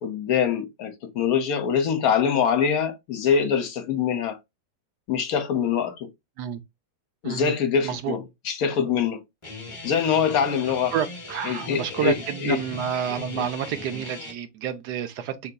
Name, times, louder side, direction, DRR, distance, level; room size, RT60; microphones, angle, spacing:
voice 1, 0.0-4.4 5.1-6.1 7.2-9.2 9.8-10.9 11.4-12.6 13.4-13.5, left 7 dB, 65° left, 1.2 m, -24 dB
voice 2, 7.2-7.5 7.8-8.1 10.9-15.5, right 9 dB, 75° right, 1.2 m, -29 dB
Guitar, 9.4-14.3, left 2 dB, 20° left, 1.0 m, -39 dB
5.5 x 3.8 x 2.2 m
omnidirectional pair, 1.8 m